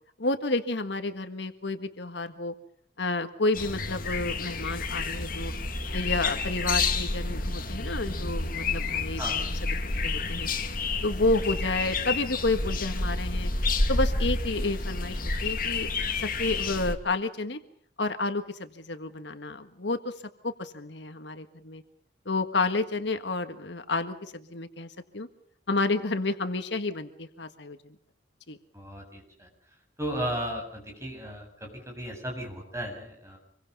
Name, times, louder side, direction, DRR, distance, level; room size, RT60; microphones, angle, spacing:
voice 1, 0.2-2.5 3.0-5.5 5.9-9.5 10.0-10.5 11.0-13.5 13.9-15.9 16.2-17.6 18.0-20.1 20.4-21.8 22.3-24.9 25.1-25.3 25.7-28.0 28.5-28.6, left 2 dB, 70° left, 8 dB, 1.7 m, -30 dB
sound 1, 3.5-17.0, left 3 dB, 45° left, 2.5 m, -29 dB
voice 2, 28.7-29.5 30.0-33.4, equal, 15° right, 2 dB, 7.6 m, -35 dB
27.0 x 23.0 x 5.5 m, 0.66 s
head